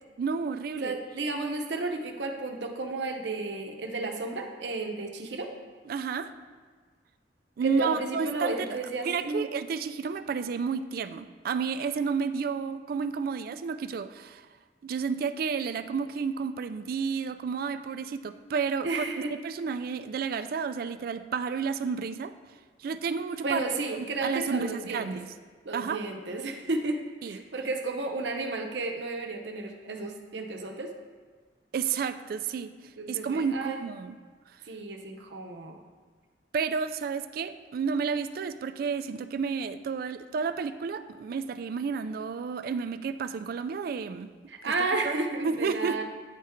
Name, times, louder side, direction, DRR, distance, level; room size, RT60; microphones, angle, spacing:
voice 1, 0.2-1.0 5.9-6.3 7.6-8.7 9.0-14.5 14.8-19.1 19.3-22.3 22.8-23.6 24.0-25.3 25.7-26.0 27.2-27.4 31.7-32.7 33.1-34.2 36.5-44.3 44.6-44.7 45.0-45.2 45.4-46.0, right 5 dB, 55° right, 11 dB, 0.3 m, -31 dB
voice 2, 0.8-5.5 7.6-9.5 18.8-19.3 23.4-25.0 25.6-27.0 27.2-30.9 33.0-33.8 34.7-35.8 44.5-46.0, right 2 dB, 75° right, 4 dB, 0.7 m, -32 dB
9.2 x 3.6 x 4.4 m, 1.5 s
head